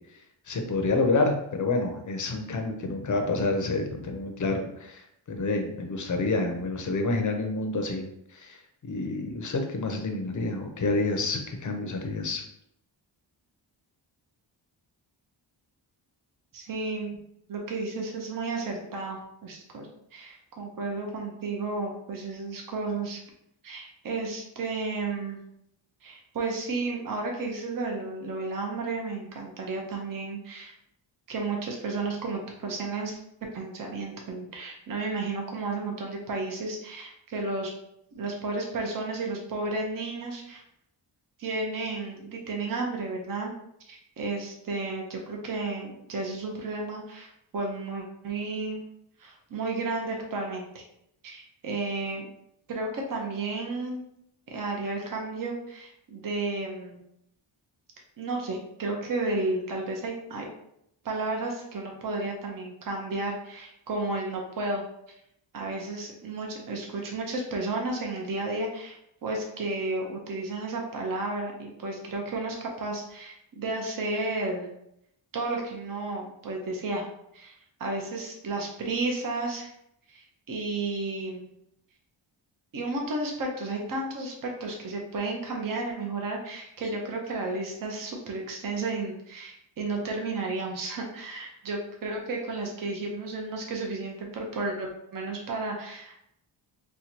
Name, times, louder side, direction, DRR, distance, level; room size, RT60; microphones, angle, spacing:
voice 1, 0.5-12.4, left 3 dB, 40° left, 4 dB, 0.6 m, -28 dB
voice 2, 16.5-17.2 17.5-23.2 23.6-25.4 26.0-30.7 31.3-33.2 33.5-37.7 38.1-40.6 41.4-43.5 43.9-48.8 49.2-50.8 51.2-52.3 52.7-54.0 54.5-57.0 58.2-60.5 61.0-64.8 65.5-74.7 75.3-77.1 77.3-79.7 80.1-81.5 82.7-96.3, right 3 dB, 45° right, 0 dB, 0.7 m, -32 dB
4.3 x 2.2 x 2.8 m, 0.76 s
wide cardioid pair, 140°, 46 cm